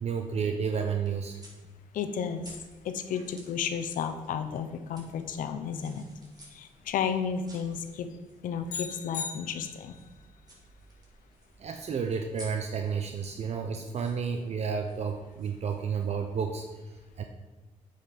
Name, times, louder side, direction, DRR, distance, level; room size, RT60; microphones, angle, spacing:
voice 1, 0.0-1.4 11.6-17.2, right 6 dB, 55° right, 5 dB, 0.7 m, -31 dB
sound 1, 0.5-16.1, right 1 dB, 30° right, 3.2 m, -56 dB
voice 2, 1.9-2.5 2.8-6.0 6.4-8.1 8.4-10.0, left 7 dB, 85° left, 8 dB, 0.8 m, -32 dB
sound 2, 8.7-10.1, left 6 dB, 70° left, 1.5 m, -38 dB
8.4 x 5.4 x 5.9 m, 1.1 s
cardioid pair, 85°, 14 cm